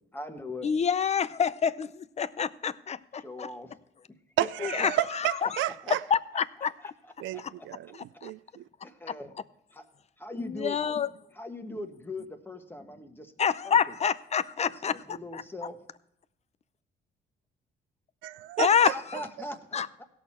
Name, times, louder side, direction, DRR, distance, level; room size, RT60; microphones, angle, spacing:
voice 1, 0.1-0.7 3.2-3.8 4.4-4.7 5.4-5.5 5.8-6.0 6.8-6.9 7.3-7.7 8.8-9.3 9.7-9.9 10.2-10.8 11.3-13.3 13.6-13.9 14.6-15.8 18.8-20.0, left 1 dB, 10° left, 1.4 m, -40 dB
voice 2, 0.6-3.5 4.6-5.6 6.1-6.9 7.4-7.5 8.2-8.3 10.3-11.1 13.4-15.4 18.6-19.2 19.7-19.9, left 7 dB, 35° left, 0.5 m, -27 dB
voice 3, 4.4-6.0 7.2-8.6 18.2-18.9, right 13 dB, 75° right, 0.4 m, -31 dB
17.0 x 6.5 x 4.3 m
cardioid pair, 90°, 20 cm